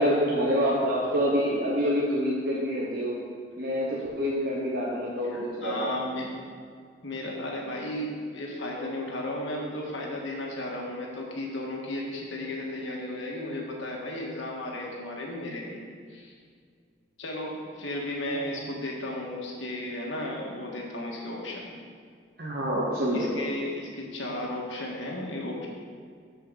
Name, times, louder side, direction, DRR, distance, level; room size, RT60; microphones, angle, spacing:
voice 1, 0.0-3.2 3.6-5.9 18.3-18.6 22.4-23.4, equal, 55° right, -5 dB, 1.1 m, -27 dB
voice 2, 5.3-6.4 7.0-15.8 16.1-16.3 17.2-21.7 23.1-25.7, left 1 dB, 85° left, -2 dB, 1.7 m, -34 dB
13.5 x 5.1 x 4.0 m, 2.1 s
head